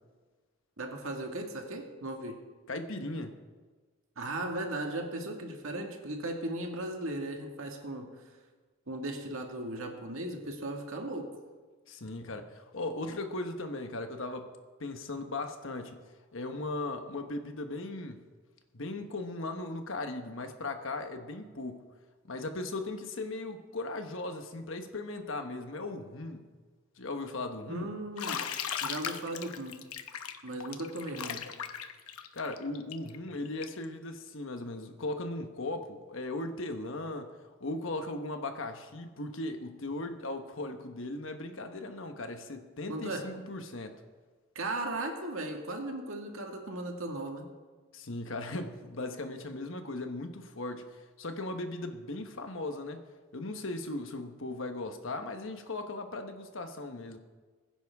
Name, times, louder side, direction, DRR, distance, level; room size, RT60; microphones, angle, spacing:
voice 1, 0.8-2.4 4.2-8.1 8.9-11.3 27.7-28.4 28.8-29.8 30.4-31.5 42.9-43.3 44.6-47.5, right 1 dB, 70° right, 2 dB, 1.9 m, -37 dB
voice 2, 2.7-3.3 11.9-14.5 14.8-16.0 16.3-18.2 18.7-21.8 22.2-26.5 27.0-27.9 32.3-37.3 37.6-44.0 47.9-53.0 53.3-57.2, left 2 dB, 65° left, 6 dB, 1.1 m, -38 dB
Bathtub (filling or washing), 28.2-33.8, left 8 dB, 85° left, 0.8 m, -38 dB
21.0 x 10.0 x 3.6 m, 1.4 s
head